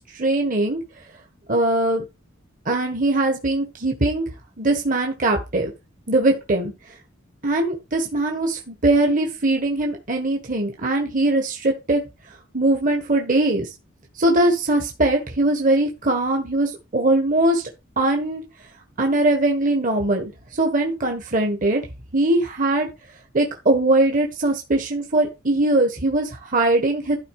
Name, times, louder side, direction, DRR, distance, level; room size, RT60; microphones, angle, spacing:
voice 1, 0.1-0.8 1.5-2.0 2.6-4.3 4.6-5.7 6.1-6.7 7.4-12.0 12.5-13.7 14.2-17.6 18.0-18.4 19.0-21.8 22.1-22.9 23.3-27.2, right 2 dB, 40° right, 3 dB, 1.4 m, -21 dB
12.0 x 4.6 x 4.8 m, 0.26 s
head